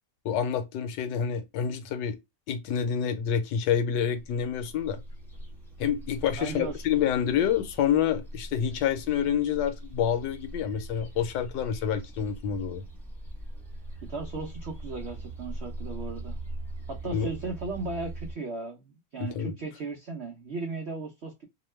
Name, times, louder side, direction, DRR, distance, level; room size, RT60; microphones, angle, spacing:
voice 1, 0.2-2.2 2.5-5.0 5.8-12.8 17.1-17.3 19.2-19.5, left 8 dB, 80° left, 1.2 m, -28 dB
sound 1, 4.0-18.3, right 1 dB, ahead, 0.5 m, -41 dB
voice 2, 6.4-6.9 14.0-16.4 16.9-21.4, right 3 dB, 90° right, 0.5 m, -36 dB
2.9 x 2.2 x 3.1 m
omnidirectional pair, 1.9 m